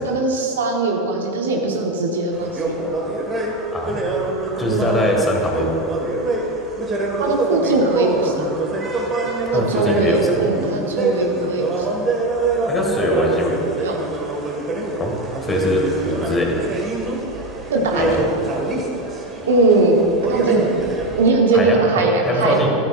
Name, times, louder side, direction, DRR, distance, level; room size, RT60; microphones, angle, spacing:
voice 1, 0.1-2.8 4.7-4.9 7.2-8.6 9.5-12.1 13.8-14.0 17.7-18.1 19.5-20.0 20.3-20.7 21.2-22.6, right 3 dB, 70° right, 1 dB, 1.2 m, -20 dB
sound 1, 2.3-21.3, right 2 dB, 30° right, 1.8 m, -24 dB
voice 2, 3.7-4.1 4.6-5.7 9.5-10.5 12.7-13.6 15.0-16.6 18.0-18.3 21.5-22.7, left 1 dB, 15° left, 1 dB, 1.9 m, -22 dB
13.0 x 12.5 x 2.5 m, 3.0 s
figure-of-eight pair, 80°, 0 cm